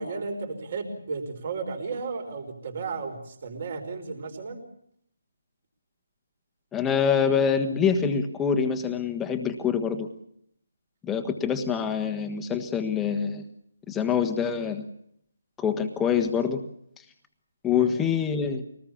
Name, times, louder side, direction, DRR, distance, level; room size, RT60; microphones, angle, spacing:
voice 1, 0.0-4.6 17.8-17.9, right 4 dB, 45° right, 4 dB, 5.1 m, -34 dB
voice 2, 6.7-10.1 11.0-13.4 13.9-14.8 15.6-16.6 17.6-18.6, left 7 dB, 10° left, 5 dB, 1.5 m, -25 dB
25.0 x 19.5 x 7.2 m, 0.72 s
hypercardioid pair, 165°, 0 cm